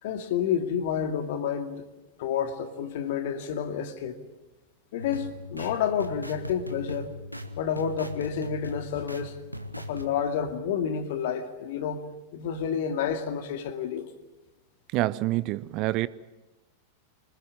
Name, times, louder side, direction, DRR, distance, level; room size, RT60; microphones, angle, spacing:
voice 1, 0.0-1.9 2.2-4.2 4.9-7.1 7.6-9.4 9.8-12.0 12.3-14.1, left 8 dB, 55° left, 2.3 m, -29 dB
sound 1, 5.0-10.1, left 1 dB, 90° right, 1.4 m, -39 dB
voice 2, 14.9-16.1, right 18 dB, 40° right, 0.7 m, -27 dB
26.0 x 20.5 x 7.5 m
figure-of-eight pair, 90°, 0 cm